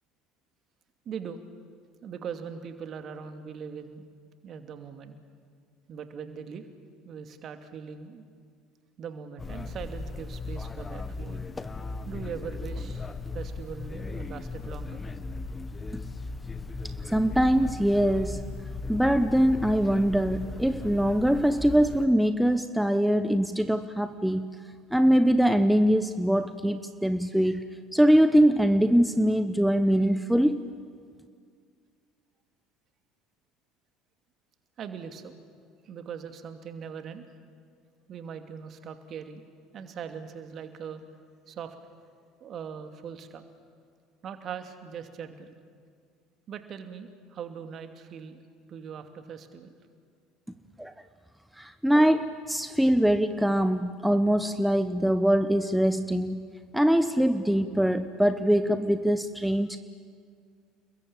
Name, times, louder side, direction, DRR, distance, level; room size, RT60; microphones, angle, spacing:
voice 1, 1.0-1.4 2.0-4.0 4.4-5.2 5.9-6.6 7.0-8.2 9.0-11.5 12.1-13.1 13.3-15.0 34.8-35.4 35.8-37.3 38.1-39.4 39.7-41.1 41.5-41.7 42.4-43.4 44.2-45.5 46.5-48.4 48.7-49.7, right 7 dB, 45° right, 7 dB, 2.6 m, -40 dB
sound 1, 9.4-22.1, left 3 dB, 20° left, 1.4 m, -37 dB
voice 2, 17.1-18.4 18.9-24.5 24.9-27.7 27.9-30.6 50.8-50.9 51.6-56.5 56.7-59.8, equal, ahead, 11 dB, 1.1 m, -23 dB
30.0 x 21.5 x 8.7 m, 2.1 s
figure-of-eight pair, 60°, 0 cm